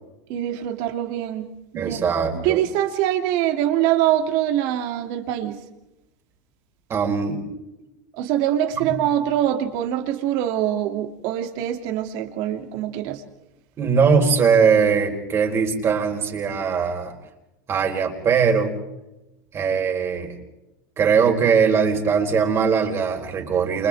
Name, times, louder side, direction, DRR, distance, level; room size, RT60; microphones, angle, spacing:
voice 1, 0.3-1.4 1.7-2.0 2.4-5.6 8.2-13.2, right 11 dB, 55° right, 5 dB, 2.8 m, -23 dB
voice 2, 1.7-2.6 6.9-7.4 8.7-8.9 13.8-17.1 17.7-18.7 19.5-20.3 21.0-23.9, right 6 dB, 30° right, 3 dB, 4.4 m, -20 dB
30.0 x 28.5 x 3.6 m, 0.93 s
supercardioid pair, 135°, 9 cm